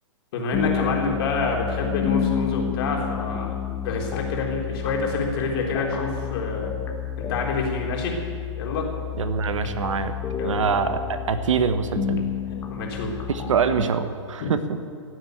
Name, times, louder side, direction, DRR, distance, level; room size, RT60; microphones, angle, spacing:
voice 1, 0.3-3.6 3.8-6.7 7.2-8.1 8.6-8.8 10.4-10.6 12.5-13.1 14.4-14.5, left 4 dB, 50° left, -1 dB, 3.6 m, -27 dB
sound 1, 0.5-13.9, left 8 dB, 15° left, 1.3 m, -30 dB
voice 2, 9.2-10.1 10.4-12.3 13.3-14.8, right 6 dB, 75° right, 10 dB, 1.2 m, -24 dB
15.5 x 8.1 x 9.0 m, 2.3 s
hypercardioid pair, 135°, 16 cm